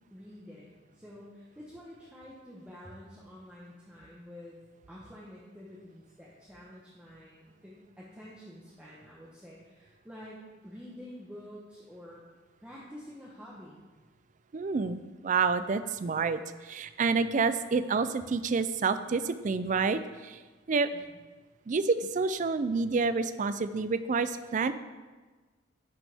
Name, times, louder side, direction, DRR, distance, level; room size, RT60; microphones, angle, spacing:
voice 1, 0.1-4.6 4.9-12.2 12.6-13.9 20.9-21.2, equal, 5° right, -7 dB, 1.0 m, -48 dB
voice 2, 14.5-20.4 20.7-20.9 21.7-24.7, right 4 dB, 40° right, 12 dB, 0.3 m, -28 dB
10.5 x 6.3 x 3.5 m, 1.3 s
head